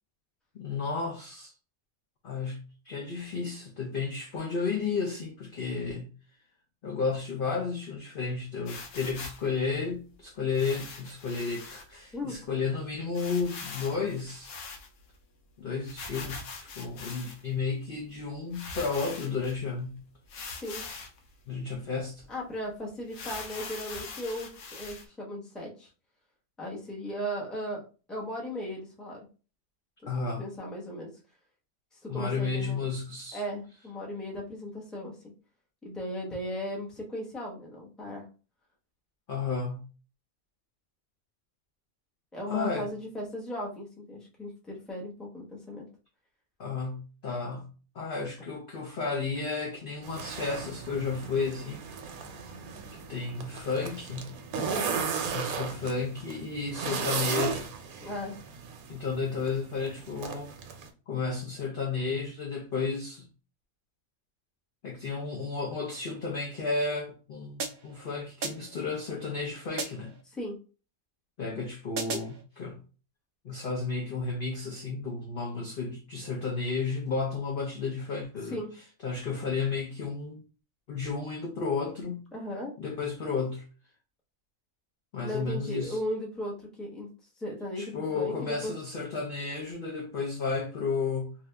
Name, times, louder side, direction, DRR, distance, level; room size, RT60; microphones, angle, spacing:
voice 1, 0.5-1.5 2.2-6.1 6.8-14.6 15.6-20.0 21.5-22.3 30.1-30.4 32.1-33.4 39.3-39.9 42.5-42.9 46.6-47.7 47.9-51.8 53.1-54.3 55.3-57.7 58.9-60.5 61.1-63.3 64.8-70.1 71.4-72.8 73.4-78.6 79.0-80.4 80.9-82.3 82.8-83.7 85.1-86.0 87.8-91.3, left 4 dB, 55° left, 0.6 m, -32 dB
sound 1, 8.7-9.5 10.5-11.8 12.3-12.4 12.6-12.7 13.1-15.2 15.8-17.5 18.2-18.3 18.5-19.6 20.3-21.2 21.7-21.8 22.2-22.3 23.1-25.0, left 4 dB, 80° left, 1.1 m, -42 dB
voice 2, 22.3-25.9 26.6-27.8 28.1-29.3 30.0-30.1 30.4-31.1 31.9-32.8 33.3-35.3 35.8-38.2 42.3-45.9 54.5-55.0 58.0-58.3 70.3-70.6 78.4-78.7 82.3-82.7 85.2-87.1 87.4-88.7, equal, ahead, 0.6 m, -37 dB
sound 2, 50.0-60.9, right 6 dB, 80° right, 1.1 m, -36 dB
sound 3, 67.6-68.0 68.4-68.8 69.8-70.2 72.0-72.4, right 4 dB, 60° right, 0.6 m, -36 dB
2.8 x 2.5 x 3.2 m
omnidirectional pair, 1.5 m